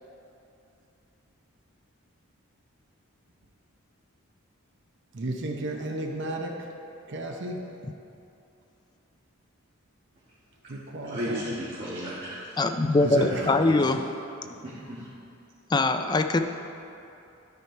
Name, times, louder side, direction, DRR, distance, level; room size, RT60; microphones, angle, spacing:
voice 1, 5.1-6.7 7.1-7.6 10.7-11.4 13.0-13.4, right 2 dB, 55° right, 2 dB, 0.7 m, -32 dB
voice 2, 11.0-12.4 13.0-13.8 14.6-15.0, equal, 40° right, -11 dB, 1.7 m, -34 dB
voice 3, 12.6-14.0 15.7-16.4, left 2 dB, 20° left, 7 dB, 0.3 m, -22 dB
12.0 x 4.7 x 4.5 m, 2.7 s
head